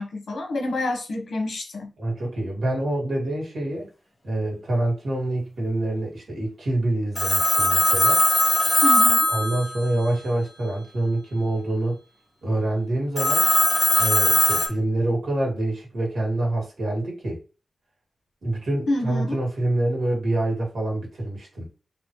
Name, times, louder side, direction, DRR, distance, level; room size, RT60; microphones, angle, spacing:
voice 1, 0.0-1.9 8.8-9.3 18.9-19.4, left 2 dB, 80° left, 1.1 m, -28 dB
voice 2, 2.0-3.9 4.2-8.2 9.3-12.0 12.4-13.5 14.0-17.4 18.4-21.7, right 1 dB, 80° right, 2.1 m, -26 dB
Telephone, 7.2-10.2 13.2-14.7, left 1 dB, 30° left, 1.2 m, -20 dB
4.0 x 3.0 x 3.1 m
wide cardioid pair, 105°, 0 cm